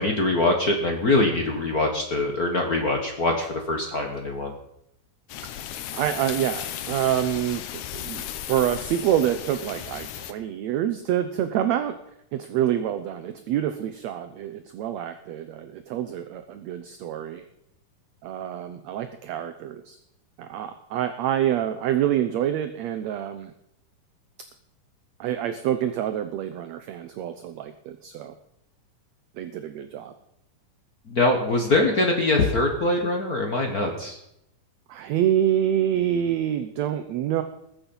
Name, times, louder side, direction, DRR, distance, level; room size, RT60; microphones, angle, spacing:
voice 1, 0.0-4.5 31.1-34.2, left 2 dB, 50° left, 3 dB, 1.1 m, -23 dB
sound 1, 5.3-10.3, left 11 dB, 70° left, 2.1 m, -35 dB
voice 2, 5.9-12.0 12.3-17.4 18.2-20.0 20.4-23.5 25.2-28.3 29.3-30.1 34.9-37.4, right 10 dB, 75° right, 9 dB, 1.6 m, -27 dB
20.5 x 7.4 x 5.5 m, 0.79 s
omnidirectional pair, 3.8 m